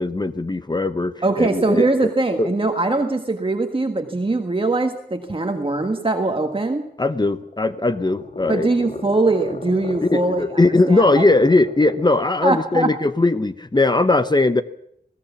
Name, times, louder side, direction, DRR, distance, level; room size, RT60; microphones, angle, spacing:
voice 1, 0.0-2.1 2.4-2.5 7.0-8.7 10.0-14.6, left 2 dB, 25° left, 12 dB, 0.8 m, -19 dB
voice 2, 1.2-6.9 8.5-11.2 12.4-12.9, right 2 dB, 30° right, 4 dB, 1.6 m, -21 dB
sound 1, 7.4-12.3, left 2 dB, 40° left, 2.0 m, -34 dB
21.0 x 17.5 x 7.2 m, 0.70 s
wide cardioid pair, 105°, 18 cm